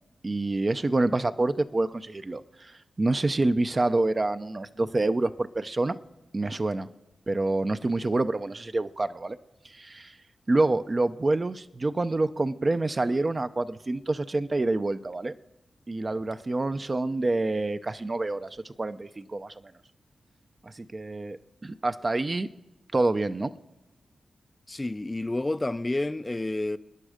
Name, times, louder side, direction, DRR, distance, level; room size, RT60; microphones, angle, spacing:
voice 1, 0.2-6.0 6.3-6.9 7.3-9.4 9.6-10.1 10.5-15.3 15.9-19.5 20.6-22.5 22.9-23.5, right 2 dB, 35° right, 0.5 m, -27 dB
voice 2, 24.7-26.8, left 2 dB, 20° left, 0.4 m, -29 dB
26.0 x 10.0 x 5.0 m
cardioid pair, 80°, 0 cm